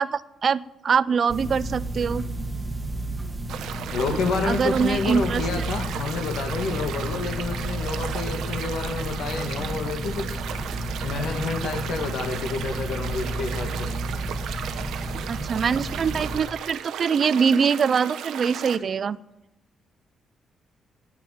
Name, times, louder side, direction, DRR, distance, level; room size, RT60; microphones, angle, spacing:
voice 1, 0.0-2.2 4.4-5.6 15.3-19.2, right 6 dB, 40° right, 18 dB, 0.4 m, -23 dB
sound 1, 1.3-16.4, right 1 dB, 15° right, 1.3 m, -32 dB
sound 2, 3.5-18.8, right 9 dB, 85° right, 0.9 m, -36 dB
voice 2, 3.9-10.4 11.0-13.9, left 4 dB, 80° left, 5 dB, 2.1 m, -29 dB
9.6 x 9.1 x 9.2 m, 0.97 s
cardioid pair, 150°, 0 cm